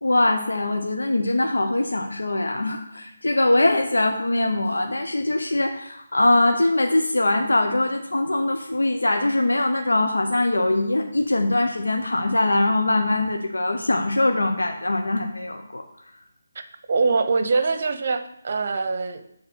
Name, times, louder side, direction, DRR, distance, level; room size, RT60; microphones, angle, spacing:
voice 1, 0.0-15.8, left 2 dB, 80° left, 4 dB, 0.9 m, -22 dB
voice 2, 16.9-19.2, right 4 dB, 50° right, 9 dB, 0.8 m, -23 dB
7.5 x 3.8 x 6.2 m, 0.75 s
figure-of-eight pair, 155°, 0 cm